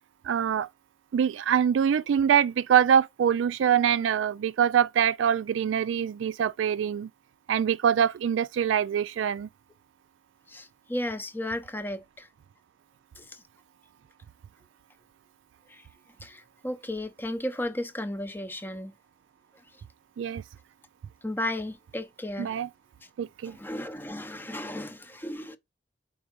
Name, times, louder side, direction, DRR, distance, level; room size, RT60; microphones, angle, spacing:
voice 1, 0.2-0.7 1.1-7.1 7.5-9.5 20.2-20.4 22.4-22.7 23.2-23.6, right 8 dB, 90° right, 0.3 m, -24 dB
voice 2, 10.5-12.3 13.2-13.4 15.7-15.8 16.2-18.9 21.2-22.6 23.4-25.6, left 1 dB, 10° left, 0.6 m, -34 dB
4.8 x 4.4 x 4.6 m
head